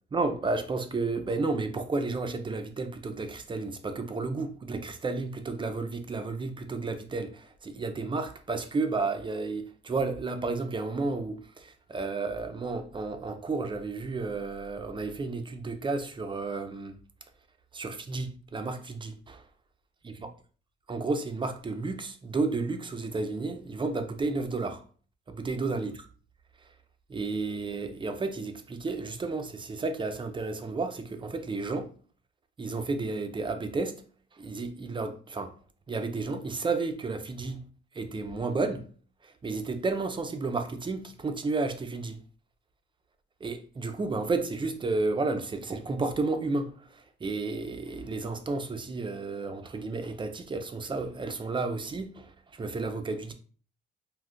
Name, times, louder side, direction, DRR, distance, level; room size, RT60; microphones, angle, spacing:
voice 1, 0.1-17.0 17.7-19.4 20.0-20.3 20.9-24.8 25.3-26.1 27.1-31.9 32.6-34.0 34.3-35.5 35.9-37.6 37.9-38.8 39.2-42.2 43.4-53.3, right 3 dB, 25° right, 0.5 m, -32 dB
3.6 x 2.5 x 2.3 m
cardioid pair, 90°, 20 cm